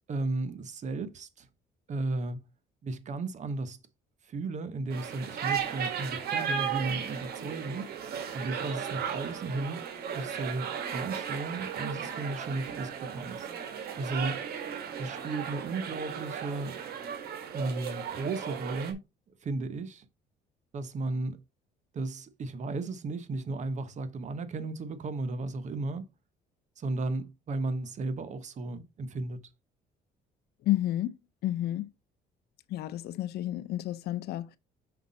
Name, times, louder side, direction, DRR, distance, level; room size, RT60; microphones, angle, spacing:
voice 1, 0.1-1.5 1.9-2.4 2.8-3.8 4.2-7.9 8.3-9.8 10.1-13.5 14.0-14.4 15.0-16.8 17.5-19.0 19.4-20.1 20.7-21.4 21.9-26.0 26.8-29.4, right 2 dB, 45° right, 1.2 m, -34 dB
sound 1, 4.9-18.9, right 7 dB, 65° right, 1.7 m, -35 dB
voice 2, 30.6-31.9 32.7-34.5, left 14 dB, 70° left, 0.6 m, -31 dB
5.9 x 5.2 x 4.2 m
cardioid pair, 110°, 17 cm